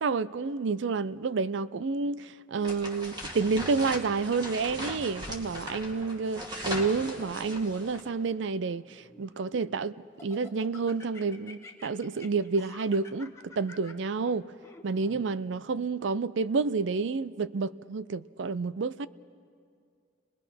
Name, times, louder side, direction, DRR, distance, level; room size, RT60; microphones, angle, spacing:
voice 1, 0.0-9.9 10.2-14.5 14.8-19.1, right 4 dB, 70° right, 0.5 m, -29 dB
sound 1, 2.6-8.1, equal, 25° right, 2.3 m, -39 dB
Laughter, 6.8-8.1 8.7-9.8 10.2-15.2, left 2 dB, 15° left, 1.2 m, -50 dB
29.5 x 20.5 x 5.8 m
head